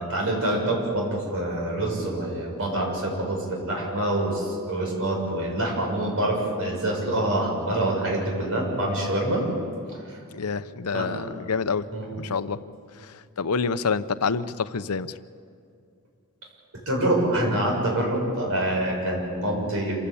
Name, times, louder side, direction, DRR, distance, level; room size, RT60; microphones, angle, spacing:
voice 1, 0.1-9.4 9.9-10.2 10.9-11.0 11.9-12.2 16.8-20.0, right 1 dB, 65° right, 0 dB, 6.7 m, -26 dB
voice 2, 10.3-11.8 12.2-12.6 13.0-15.1, left 5 dB, 85° left, 13 dB, 0.7 m, -27 dB
27.0 x 16.0 x 8.5 m, 2.3 s
head